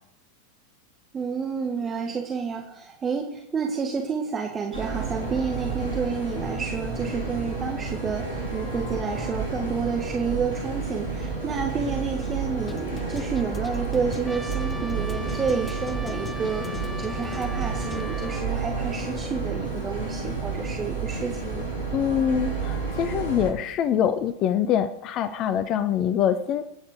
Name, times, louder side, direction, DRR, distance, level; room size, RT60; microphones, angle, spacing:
voice 1, 1.1-21.7, right 5 dB, 20° right, 2 dB, 1.8 m, -30 dB
sound 1, 4.7-23.5, right 4 dB, 85° right, 7.8 m, -31 dB
sound 2, 11.8-18.0, left 4 dB, 15° left, 1.1 m, -40 dB
Trumpet, 14.3-18.4, right 1 dB, ahead, 1.1 m, -39 dB
voice 2, 21.9-26.6, left 9 dB, 35° left, 14 dB, 0.8 m, -24 dB
28.0 x 9.5 x 4.8 m, 0.82 s
figure-of-eight pair, 90°, 0 cm